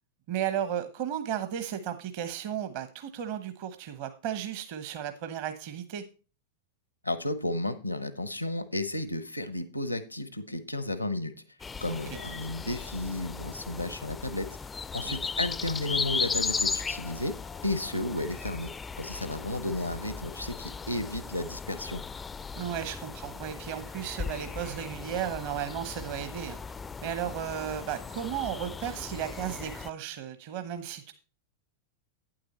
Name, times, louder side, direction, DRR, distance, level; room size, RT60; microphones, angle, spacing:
voice 1, 0.3-6.0 11.9-12.2 15.0-15.2 22.5-26.6 27.0-31.1, right 9 dB, 50° right, 9 dB, 0.9 m, -34 dB
voice 2, 7.0-11.3 11.8-14.5 14.9-17.3 17.6-18.7 19.0-22.0, left 1 dB, 90° left, 13 dB, 0.9 m, -33 dB
sound 1, 11.6-29.9, left 5 dB, 15° left, 0.3 m, -37 dB
9.2 x 7.8 x 4.2 m, 0.35 s
figure-of-eight pair, 95°, 0 cm